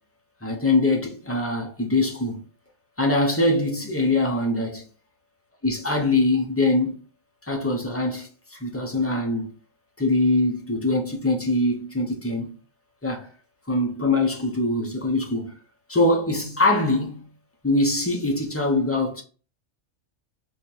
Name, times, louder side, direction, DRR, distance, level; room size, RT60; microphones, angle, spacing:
voice 1, 0.4-2.4 3.0-4.8 5.6-6.9 7.5-9.5 10.0-12.6 13.0-13.3 13.7-15.6 15.9-17.2 17.6-19.2, left 2 dB, 20° left, 0.4 m, -23 dB
3.2 x 2.3 x 4.2 m
omnidirectional pair, 1.4 m